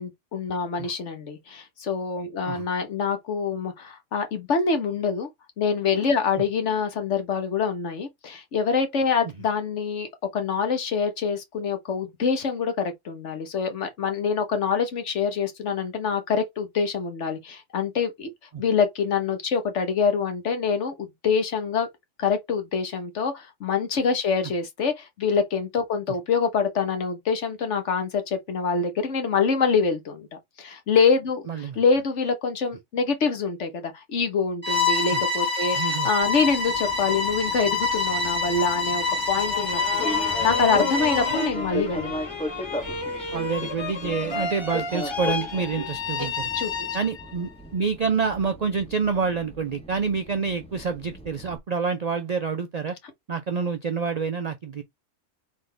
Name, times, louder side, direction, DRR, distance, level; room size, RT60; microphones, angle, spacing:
voice 1, 0.0-5.3 5.6-18.3 18.6-21.9 22.2-30.3 30.6-42.2 46.2-46.3 46.5-46.9, left 5 dB, 65° left, 1.3 m, -25 dB
voice 2, 31.5-31.8 35.1-35.2 35.7-36.1 43.3-46.5 46.9-53.0 53.3-54.8, right 5 dB, 60° right, 0.4 m, -27 dB
Bowed string instrument, 34.6-41.6, left 4 dB, 10° right, 1.4 m, -26 dB
Fixed-wing aircraft airplane, 36.2-51.6, left 1 dB, 5° left, 0.5 m, -37 dB
sound 1, 39.3-47.5, left 4 dB, 25° left, 0.9 m, -32 dB
3.9 x 3.6 x 3.2 m
omnidirectional pair, 1.3 m